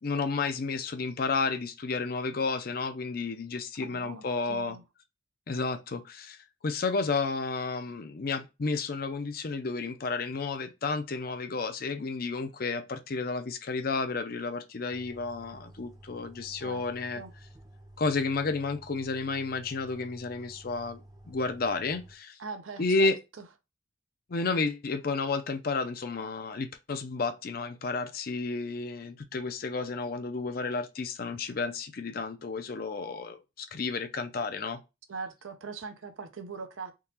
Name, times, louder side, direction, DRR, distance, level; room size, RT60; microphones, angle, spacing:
voice 1, 0.0-4.8 5.5-17.2 18.0-22.4 22.8-23.2 24.3-34.8, left 4 dB, 45° left, 0.5 m, -31 dB
voice 2, 3.8-4.8 16.6-16.8 17.2-17.3 22.4-23.4 35.1-36.9, right 4 dB, 85° right, 0.6 m, -41 dB
sound 1, 14.9-22.2, right 1 dB, 20° right, 0.5 m, -52 dB
3.7 x 2.8 x 2.8 m
head